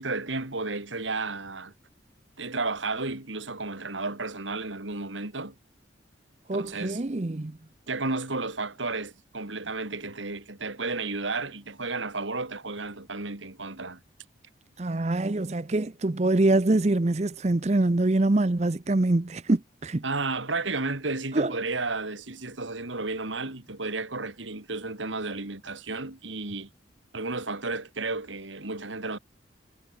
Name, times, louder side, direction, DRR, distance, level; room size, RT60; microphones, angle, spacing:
voice 1, 0.0-1.7 2.4-5.5 6.5-7.0 7.9-14.0 20.0-26.7 27.1-29.2, right 3 dB, 85° right, 3.1 m, -32 dB
voice 2, 6.5-7.6 14.8-20.0 21.3-21.5, right 2 dB, 35° right, 0.6 m, -24 dB
head